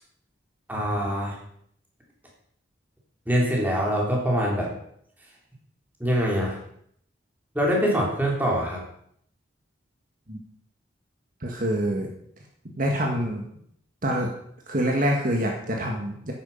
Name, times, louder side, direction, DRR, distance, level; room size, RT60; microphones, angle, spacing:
voice 1, 0.7-1.4 3.3-4.7 6.0-6.6 7.5-8.8, equal, 10° right, -2 dB, 3.3 m, -24 dB
voice 2, 11.4-12.1 12.8-13.4 14.0-14.3 14.7-16.3, equal, 45° right, 0 dB, 1.7 m, -26 dB
11.0 x 9.1 x 5.7 m, 0.68 s
head